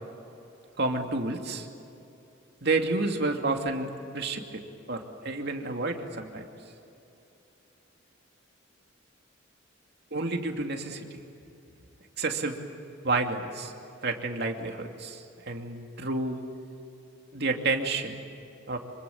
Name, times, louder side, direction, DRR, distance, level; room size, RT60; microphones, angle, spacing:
voice 1, 0.8-1.7 2.6-4.6 4.9-6.4 10.1-11.2 12.2-12.6 13.0-13.7 14.0-16.4 17.3-18.2 18.7-18.8, right 3 dB, 55° right, 3 dB, 2.5 m, -30 dB
26.5 x 24.5 x 7.2 m, 2.8 s
head